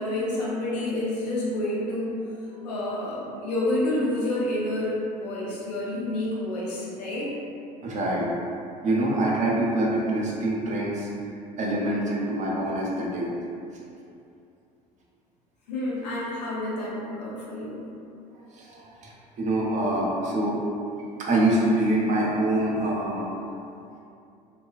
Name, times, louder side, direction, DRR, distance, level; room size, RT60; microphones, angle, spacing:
voice 1, 0.0-2.1 2.6-7.3 15.7-17.8, left 1 dB, 75° left, -6 dB, 0.6 m, -29 dB
voice 2, 7.8-8.3 8.8-11.1 11.6-13.3 18.5-20.6 21.0-23.3, right 1 dB, 35° right, -4 dB, 0.6 m, -25 dB
2.3 x 2.2 x 2.4 m, 2.6 s
hypercardioid pair, 65°, 21 cm